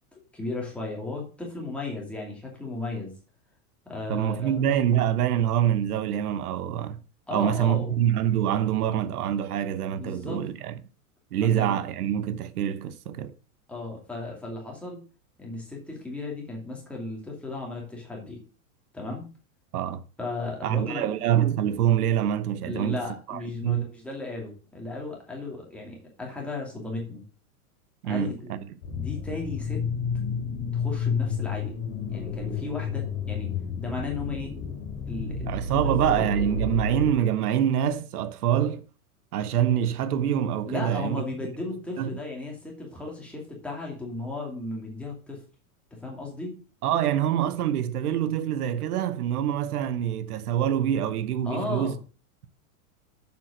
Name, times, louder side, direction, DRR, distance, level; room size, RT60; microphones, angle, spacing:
voice 1, 0.1-3.1 3.9-4.6 7.3-8.0 9.9-10.4 11.5-11.8 13.7-15.0 15.4-18.4 18.9-19.2 20.2-21.1 22.6-27.2 28.0-28.6 28.9-29.8 30.7-31.7 32.1-34.5 35.1-35.6 35.8-36.3 40.7-45.4 46.0-46.5 51.4-52.0, left 3 dB, 5° left, 2.3 m, -35 dB
voice 2, 4.1-7.0 7.3-10.8 11.3-13.3 19.7-20.0 20.6-23.0 23.3-23.8 28.0-28.7 35.5-38.8 39.3-41.2 42.0-42.1 46.8-52.0, right 10 dB, 90° right, 1.1 m, -25 dB
sound 1, 28.8-37.1, left 4 dB, 45° left, 3.1 m, -30 dB
7.4 x 5.9 x 6.5 m
supercardioid pair, 170°, 44 cm